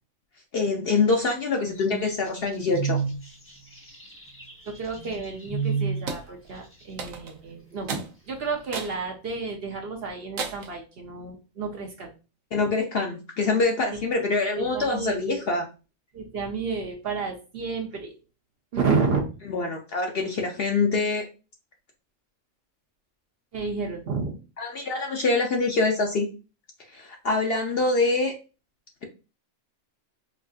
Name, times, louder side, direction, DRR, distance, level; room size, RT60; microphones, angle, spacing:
voice 1, 0.5-3.0 12.5-15.7 19.5-21.3 24.6-26.3 26.9-28.3, left 3 dB, 60° left, 2 dB, 0.7 m, -25 dB
sound 1, 1.8-6.1, right 6 dB, 15° left, 0.5 m, -30 dB
voice 2, 4.6-12.1 13.9-14.0 14.6-15.5 16.1-18.1 18.7-19.3 23.5-24.4, right 4 dB, 55° right, 2 dB, 0.8 m, -31 dB
sound 2, 6.1-6.3 7.0-7.4 7.9-8.1 8.7-9.0 9.5-9.6 10.4-10.8, right 5 dB, 80° right, 1.1 m, -33 dB
4.4 x 2.5 x 2.4 m, 0.32 s
omnidirectional pair, 1.4 m